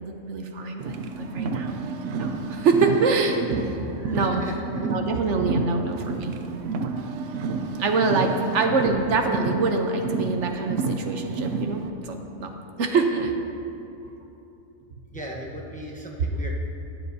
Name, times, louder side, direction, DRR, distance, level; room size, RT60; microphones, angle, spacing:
voice 1, 0.0-3.6 4.1-4.4 4.8-6.3 7.8-12.5 12.8-13.3 16.2-16.3, right 4 dB, 70° right, 4 dB, 1.1 m, -25 dB
Car, 0.8-11.9, right 4 dB, 90° right, 1.0 m, -30 dB
voice 2, 3.9-4.9 12.4-12.5 14.0-14.1 15.1-16.5, equal, 5° left, -2 dB, 0.8 m, -38 dB
21.0 x 7.7 x 2.7 m, 2.9 s
omnidirectional pair, 1.3 m